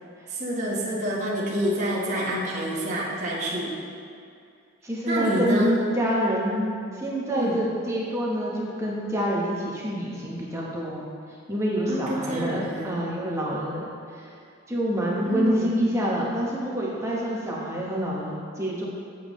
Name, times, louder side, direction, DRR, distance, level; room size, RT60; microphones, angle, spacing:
voice 1, 0.3-3.8 5.1-5.7 7.3-7.6 11.9-13.0 15.2-15.7, right 1 dB, 35° right, -7 dB, 1.3 m, -27 dB
voice 2, 4.8-11.1 11.5-14.3 14.7-18.9, equal, 15° right, -5 dB, 1.0 m, -27 dB
8.2 x 7.1 x 3.1 m, 2.4 s
head